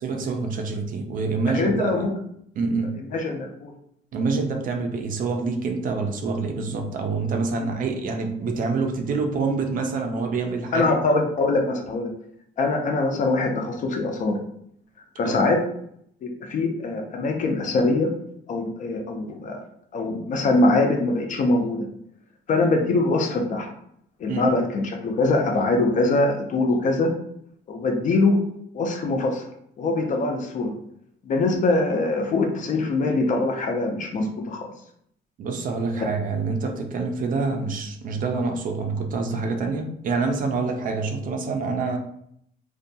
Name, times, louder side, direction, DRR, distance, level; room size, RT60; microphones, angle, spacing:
voice 1, 0.0-2.1 2.6-2.9 4.1-11.0 15.2-15.4 24.3-24.6 35.4-42.0, right 4 dB, 50° right, 3 dB, 0.4 m, -26 dB
voice 2, 1.5-2.1 3.1-3.7 10.7-12.1 12.6-14.4 15.2-15.6 16.2-18.1 18.5-19.6 19.9-21.9 22.5-23.7 24.2-27.1 27.7-28.4 28.7-29.4 29.8-30.7 31.3-34.7, left 2 dB, 45° left, 3 dB, 0.4 m, -23 dB
2.6 x 2.2 x 2.6 m, 0.71 s
cardioid pair, 175°, 19 cm